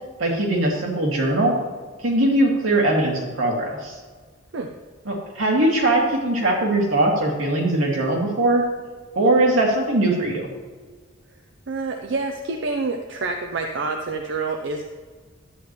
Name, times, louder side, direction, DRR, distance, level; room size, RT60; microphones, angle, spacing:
voice 1, 0.2-1.6 2.0-4.0 5.1-8.6 9.2-10.5, right 1 dB, 80° right, -2 dB, 2.3 m, -20 dB
voice 2, 11.7-14.8, right 3 dB, 60° right, 4 dB, 0.6 m, -27 dB
11.0 x 8.9 x 3.1 m, 1.5 s
head